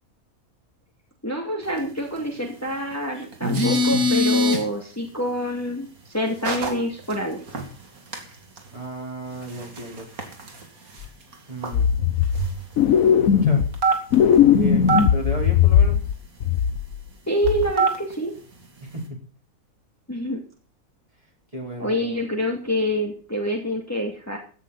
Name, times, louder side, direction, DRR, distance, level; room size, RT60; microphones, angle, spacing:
voice 1, 1.2-7.4 17.3-18.3 20.1-20.4 21.8-24.4, equal, 10° left, 0 dB, 2.4 m, -26 dB
sound 1, 3.3-4.6 6.4-6.7 7.1-7.2 7.5-7.7 8.1-8.2 8.6-8.7 9.4-10.7 11.0-11.1 11.3-11.4 11.6-11.7 12.3-12.8 13.7-14.3 14.9-15.0 17.5-18.1, equal, 90° right, 2.8 m, -22 dB
voice 2, 8.7-10.1 11.5-11.9 13.3-13.7 14.5-16.0 18.8-19.2 21.5-22.3, equal, 25° right, 0 dB, 4.0 m, -34 dB
sound 2, 11.0-11.1 11.7-12.5 12.8-13.8 14.1-16.1 16.4-17.1 17.4-17.7, left 8 dB, 75° left, 1.2 m, -18 dB
16.0 x 11.5 x 4.1 m, 0.40 s
omnidirectional pair, 1.5 m